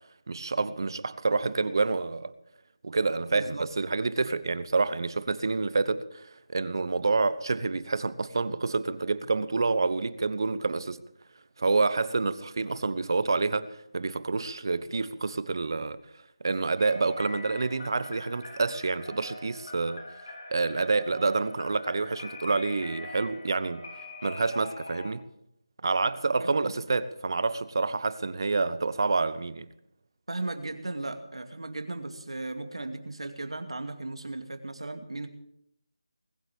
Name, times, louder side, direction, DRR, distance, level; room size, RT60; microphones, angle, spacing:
voice 1, 0.3-2.3 2.8-11.0 11.6-16.0 16.4-20.0 20.5-23.8 24.2-25.2 25.8-29.7, right 3 dB, 50° right, 1.0 m, -28 dB
voice 2, 3.3-3.7 26.4-26.8 30.3-35.3, right 2 dB, 85° right, 2.5 m, -36 dB
sound 1, 16.8-25.1, left 2 dB, 55° left, 3.6 m, -43 dB
20.5 x 7.9 x 8.6 m
figure-of-eight pair, 170°, 3 cm